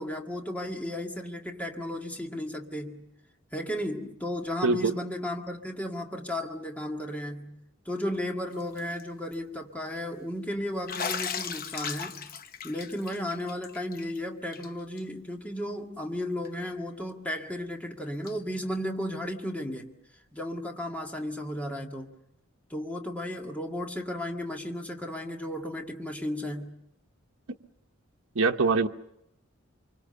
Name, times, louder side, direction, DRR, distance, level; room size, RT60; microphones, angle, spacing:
voice 1, 0.0-3.1 3.5-7.6 7.9-12.3 12.6-19.9 20.3-22.1 22.7-26.8, left 1 dB, 5° left, 1.9 m, -34 dB
voice 2, 4.6-4.9 28.3-28.9, right 3 dB, 80° right, 1.0 m, -23 dB
Bathtub (filling or washing), 8.6-9.0 9.3-9.4 10.9-14.2 14.5-14.7 15.0-15.1 16.4-16.5 18.3-18.4, left 6 dB, 45° left, 0.9 m, -36 dB
26.5 x 24.5 x 6.9 m
head